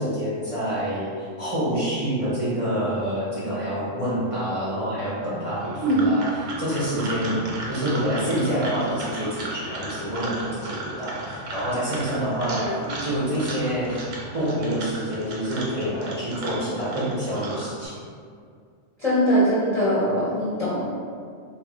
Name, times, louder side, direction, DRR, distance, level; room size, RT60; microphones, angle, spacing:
voice 1, 0.0-6.3 6.6-7.4 7.7-14.0 14.3-18.0, equal, 40° right, -10 dB, 0.5 m, -27 dB
sound 1, 5.5-17.9, right 2 dB, 90° right, 1.0 m, -35 dB
voice 2, 12.5-12.9 19.0-20.9, equal, 40° left, -12 dB, 0.6 m, -22 dB
2.4 x 2.0 x 3.7 m, 2.2 s
omnidirectional pair, 1.3 m